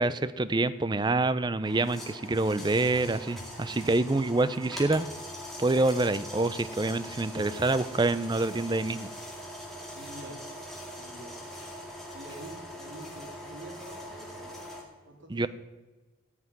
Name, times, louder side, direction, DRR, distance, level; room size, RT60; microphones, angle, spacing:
voice 1, 0.0-5.1 5.6-9.1 15.3-15.5, right 2 dB, 20° right, 15 dB, 0.5 m, -26 dB
sound 1, 1.6-14.8, equal, ahead, 2.3 m, -42 dB
voice 2, 9.9-10.4 10.8-11.3 12.1-14.6 15.0-15.5, right 1 dB, 70° right, 1 dB, 3.3 m, -46 dB
14.5 x 5.9 x 9.5 m, 1.2 s
head